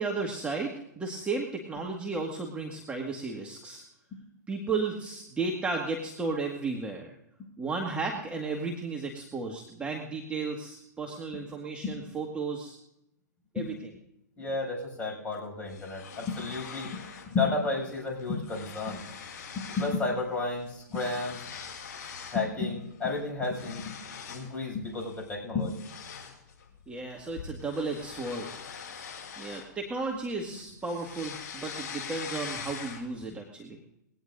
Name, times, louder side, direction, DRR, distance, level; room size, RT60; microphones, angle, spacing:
voice 1, 0.0-3.8 4.5-7.1 7.6-12.8 13.5-13.7 26.9-28.5 29.4-33.8, right 3 dB, 10° right, 0 dB, 1.8 m, -34 dB
voice 2, 14.4-17.0 17.3-19.0 19.6-21.4 22.3-24.0 24.3-25.8, left 3 dB, 15° left, -2 dB, 7.0 m, -32 dB
sound 1, 15.7-17.4 17.7-17.9 18.2-20.0 20.3-22.5 22.9-24.6 25.0-25.2 25.6-30.2 30.5-33.2, left 6 dB, 55° left, 6.5 m, -43 dB
21.5 x 17.5 x 2.6 m, 0.82 s
hypercardioid pair, 125°, 10 cm